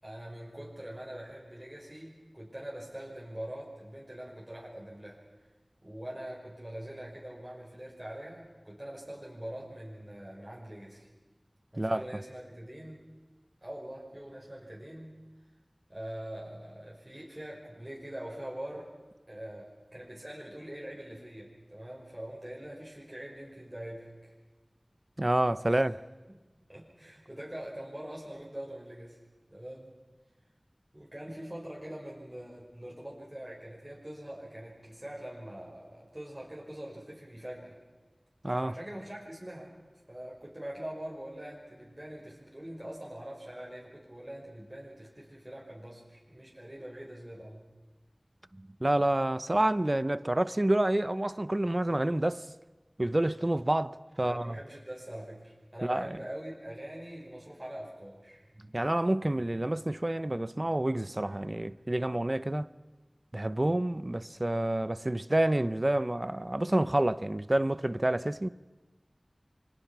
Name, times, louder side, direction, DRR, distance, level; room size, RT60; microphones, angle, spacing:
voice 1, 0.0-5.2 5.8-11.1 11.7-13.0 13.6-15.2 15.9-18.9 19.3-24.3 25.7-25.9 26.3-26.4 26.7-29.2 29.5-29.9 30.9-37.8 38.6-39.7 40.1-47.6 54.2-58.4, right 1 dB, 20° right, 5.4 m, -43 dB
voice 2, 25.2-26.0 38.4-38.7 48.8-52.4 53.0-54.6 55.8-56.1 58.7-62.7 63.3-68.5, right 1 dB, 40° right, 0.7 m, -28 dB
28.0 x 24.5 x 6.1 m
wide cardioid pair, 45°, 0 cm